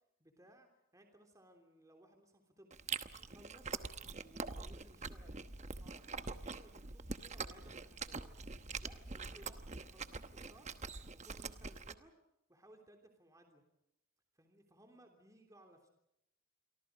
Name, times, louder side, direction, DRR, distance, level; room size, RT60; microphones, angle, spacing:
voice 1, 0.2-2.8 3.2-3.8 4.1-8.4 8.8-10.7 11.1-12.1 12.5-13.6 14.3-15.9, right 1 dB, 15° right, 4 dB, 3.2 m, -62 dB
Chewing mastication, 2.7-11.9, right 4 dB, 35° right, 1.0 m, -44 dB
28.5 x 24.0 x 5.1 m, 0.80 s
head